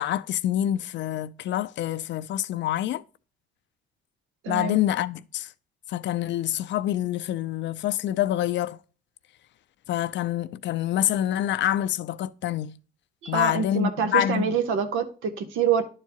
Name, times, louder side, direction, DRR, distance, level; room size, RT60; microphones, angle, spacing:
voice 1, 0.0-3.0 4.5-5.5 5.9-8.8 9.9-12.7 13.3-14.6, left 12 dB, 65° left, 0.4 m, -26 dB
voice 2, 4.4-4.8 13.2-15.8, right 7 dB, 90° right, 1.0 m, -26 dB
10.5 x 4.6 x 2.8 m
cardioid pair, 90°, 20 cm